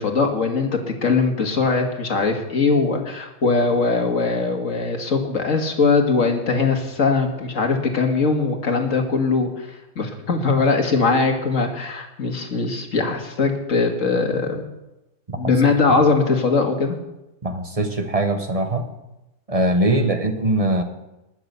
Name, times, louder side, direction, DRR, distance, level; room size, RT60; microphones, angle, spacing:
voice 1, 0.0-14.6 15.4-17.0 19.8-20.1, left 4 dB, 45° left, 3 dB, 2.0 m, -21 dB
voice 2, 17.4-18.9 19.5-20.8, right 1 dB, 25° right, 6 dB, 0.8 m, -22 dB
20.0 x 6.8 x 6.8 m, 0.95 s
omnidirectional pair, 1.9 m